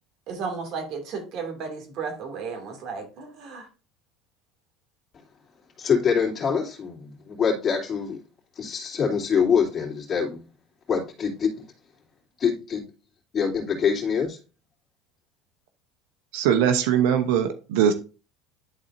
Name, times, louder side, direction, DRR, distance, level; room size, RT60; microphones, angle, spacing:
voice 1, 0.3-3.7, right 5 dB, 55° right, 2.5 m, -34 dB
voice 2, 5.8-8.2 8.6-10.4 10.9-11.5 12.4-12.8 13.3-14.4, left 6 dB, 35° left, 3.0 m, -24 dB
voice 3, 16.3-17.9, right 9 dB, 75° right, 0.9 m, -21 dB
11.0 x 4.2 x 2.7 m
supercardioid pair, 95°, 0 cm